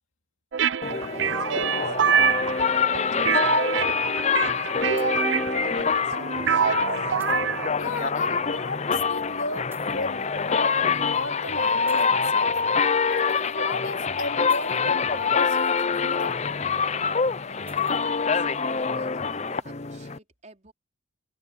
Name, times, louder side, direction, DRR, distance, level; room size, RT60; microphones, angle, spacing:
sound 1, 0.5-7.7, right 7 dB, 65° right, 0.5 m, -25 dB
sound 2, 0.8-20.2, left 5 dB, 35° left, 0.6 m, -25 dB
sound 3, 0.9-1.5 2.5-3.2 4.4-5.4 5.9-6.0 7.2-7.4 8.3-8.4 9.7-10.0 10.8-11.1 11.9-12.2 13.1-13.6 14.5-14.8 15.3-15.8 16.2-16.4 17.6-18.1 18.6-18.9, right 3 dB, 10° right, 5.5 m, -52 dB
voice 1, 1.0-2.4 2.7-7.2 17.4-20.7, right 2 dB, 40° right, 4.7 m, -50 dB
voice 2, 7.8-12.6 13.1-16.4, left 3 dB, 80° left, 2.6 m, -34 dB
head